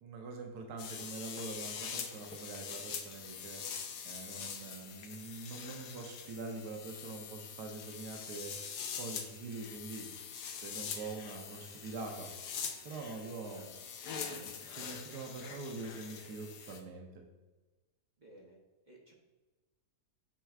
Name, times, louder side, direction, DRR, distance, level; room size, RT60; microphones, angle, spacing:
voice 1, 0.0-3.6 4.0-10.3 10.6-12.3 12.8-13.7 14.1-17.2, right 3 dB, 75° right, 2 dB, 1.3 m, -44 dB
sound 1, 0.8-16.8, left 7 dB, 80° left, 1.2 m, -44 dB
voice 2, 18.2-18.6 18.8-19.1, right 1 dB, 35° right, -2 dB, 0.8 m, -55 dB
8.9 x 4.5 x 2.4 m, 1.2 s
omnidirectional pair, 1.8 m